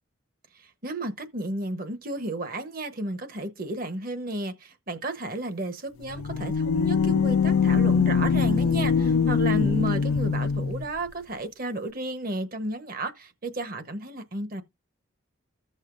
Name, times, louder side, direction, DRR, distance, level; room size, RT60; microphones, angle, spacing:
voice 1, 0.6-14.6, right 2 dB, 45° right, 1.0 m, -33 dB
sound 1, 6.0-10.8, left 6 dB, 85° left, 0.4 m, -23 dB
15.0 x 6.5 x 2.5 m
head